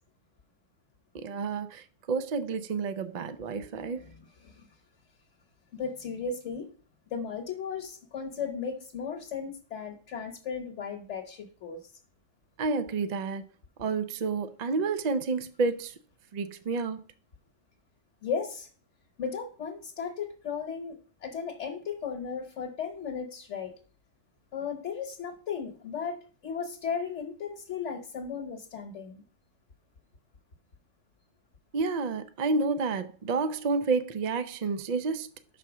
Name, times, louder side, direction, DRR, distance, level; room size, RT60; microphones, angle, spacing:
voice 1, 1.1-4.0 12.6-13.4 13.8-15.9 16.3-17.0 31.7-35.3, right 4 dB, 60° right, 0.4 m, -30 dB
voice 2, 4.0-4.6 5.7-6.7 7.1-11.8 18.2-18.7 19.2-21.0 21.2-23.7 24.5-29.2, left 6 dB, 65° left, 1.3 m, -36 dB
5.6 x 4.2 x 6.0 m
omnidirectional pair, 1.3 m